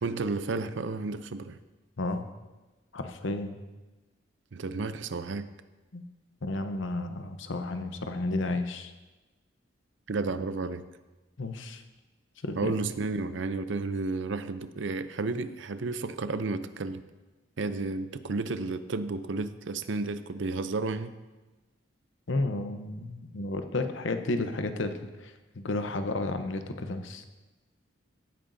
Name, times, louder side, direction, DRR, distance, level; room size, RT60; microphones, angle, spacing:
voice 1, 0.0-1.6 4.5-5.5 10.1-10.8 12.6-17.0 17.6-21.2, right 3 dB, 75° right, 12 dB, 0.6 m, -32 dB
voice 2, 2.9-3.6 5.9-6.0 6.4-8.9 11.4-11.8 12.4-12.7 22.3-24.9 25.2-25.3 25.6-27.2, left 2 dB, 80° left, 7 dB, 0.8 m, -32 dB
17.0 x 8.8 x 2.7 m, 1.2 s
head